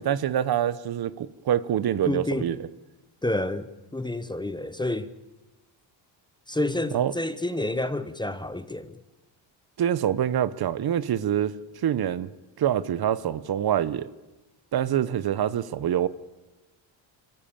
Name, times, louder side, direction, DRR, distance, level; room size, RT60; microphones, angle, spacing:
voice 1, 0.0-2.6 6.9-7.1 9.8-11.5 11.8-12.3 12.6-14.1 14.7-16.1, right 10 dB, 50° right, 0.9 m, -25 dB
voice 2, 2.1-2.5 3.2-5.1 6.5-9.0, left 1 dB, 10° left, 0.8 m, -29 dB
28.5 x 14.5 x 8.7 m
cardioid pair, 140°, 47 cm